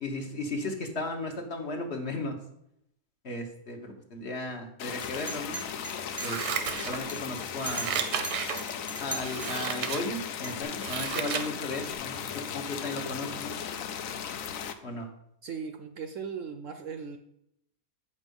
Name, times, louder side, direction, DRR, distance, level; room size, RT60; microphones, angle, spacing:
voice 1, 0.0-2.4 3.2-5.6 6.2-8.0 9.0-12.2 12.5-13.5 14.8-15.1, left 2 dB, 45° left, 3 dB, 1.2 m, -35 dB
sound 1, 4.8-14.7, left 8 dB, 65° left, 1.0 m, -37 dB
Chink clink, 5.0-9.9 10.4-10.6, right 2 dB, 15° right, 0.9 m, -40 dB
Scissors, 6.1-7.2 7.6-8.6 9.2-10.0 10.5-11.5 11.9-12.0, right 8 dB, 85° right, 1.3 m, -33 dB
voice 2, 15.4-17.2, right 6 dB, 65° right, 6 dB, 0.8 m, -38 dB
8.3 x 5.4 x 5.3 m, 0.77 s
omnidirectional pair, 1.7 m